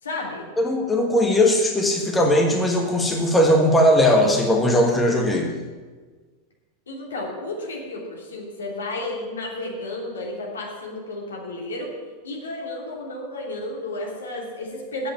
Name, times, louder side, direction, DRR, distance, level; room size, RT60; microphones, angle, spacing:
voice 1, 0.0-0.5 6.9-11.9 12.2-15.1, left 2 dB, 70° left, -2 dB, 3.0 m, -32 dB
voice 2, 0.6-5.5, left 1 dB, 10° left, 2 dB, 1.4 m, -19 dB
8.7 x 7.9 x 9.1 m, 1.4 s
figure-of-eight pair, 90°, 0 cm